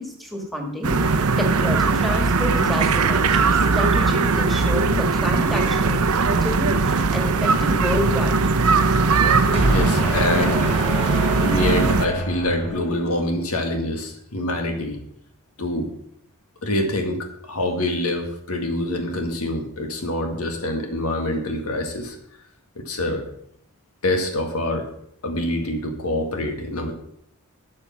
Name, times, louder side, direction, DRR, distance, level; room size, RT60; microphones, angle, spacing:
voice 1, 0.0-6.0 6.3-8.4, left 1 dB, ahead, 1 dB, 1.9 m, -29 dB
sound 1, 0.8-12.1, right 4 dB, 85° right, 0.8 m, -20 dB
sound 2, 8.9-13.4, right 1 dB, 30° left, 2.8 m, -27 dB
voice 2, 9.7-10.8 11.4-15.0 15.6-15.9 16.6-22.2 22.8-23.2 24.0-24.9 25.2-26.9, left 1 dB, 85° left, 4 dB, 1.9 m, -25 dB
12.5 x 6.6 x 5.9 m, 0.70 s
head